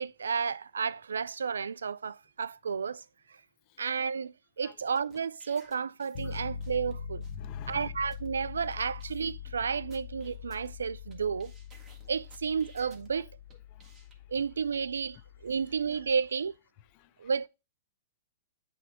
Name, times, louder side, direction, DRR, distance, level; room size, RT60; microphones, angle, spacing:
voice 1, 0.0-3.0 3.8-7.2 7.7-11.5 12.1-13.3 14.3-15.2 15.4-16.5 17.2-17.5, right 6 dB, 85° right, 0.3 m, -32 dB
sound 1, 4.8-6.9 7.2-7.4 7.8-7.9 8.1-8.3 8.7-8.8 9.0-9.5 9.9-11.1 11.4-13.1 13.5-14.1, right 3 dB, 20° right, 1.6 m, -59 dB
sound 2, 6.1-16.3, left 7 dB, 65° left, 0.9 m, -43 dB
voice 2, 6.2-6.5 7.3-8.0 13.2-13.3 13.7-14.1 15.1-16.0 16.8-17.3, left 13 dB, 45° left, 0.4 m, -51 dB
8.2 x 3.3 x 4.1 m
hypercardioid pair, 115°, 0 cm